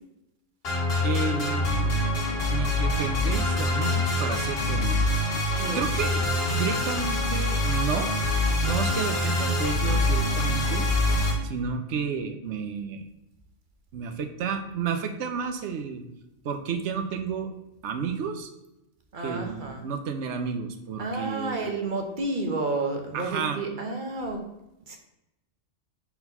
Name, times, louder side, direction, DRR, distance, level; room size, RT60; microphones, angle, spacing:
sound 1, 0.6-11.3, left 2 dB, 55° left, 1.6 m, -25 dB
voice 1, 1.0-1.9 2.5-5.1 5.7-8.1 8.6-10.9 11.4-13.0 13.9-16.0 16.4-17.5 17.8-18.5 19.2-21.6 23.1-23.6, right 6 dB, 75° right, 7 dB, 1.0 m, -31 dB
voice 2, 5.6-5.9 19.1-19.8 21.0-24.4 24.9-25.0, right 2 dB, 45° right, 3 dB, 1.1 m, -30 dB
4.4 x 4.4 x 5.4 m, 0.89 s
omnidirectional pair, 1.2 m